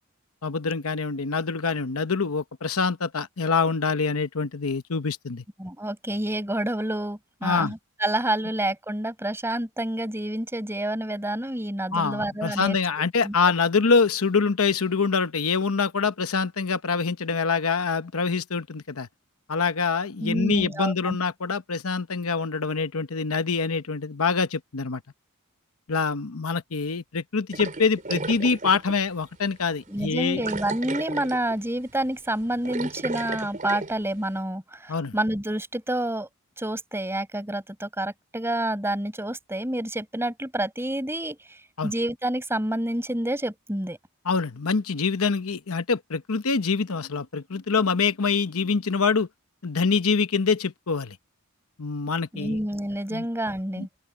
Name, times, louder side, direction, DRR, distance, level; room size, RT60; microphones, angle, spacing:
voice 1, 0.4-5.4 7.4-7.7 11.9-19.1 19.5-25.0 25.9-30.4 34.9-35.1 41.8-41.9 44.2-49.3 49.6-51.2 51.8-52.6 53.1-53.2 53.8-53.9, left 5 dB, 70° left, 0.9 m, -25 dB
voice 2, 5.6-12.8 13.2-13.3 20.2-21.2 29.9-36.3 36.6-41.6 41.8-44.0 52.3-53.9, right 1 dB, 10° right, 5.7 m, -28 dB
sound 1, 27.5-29.0 29.4-29.5 30.4-31.6 31.9-32.1 32.4-33.9, right 3 dB, 35° right, 3.4 m, -34 dB
open air
head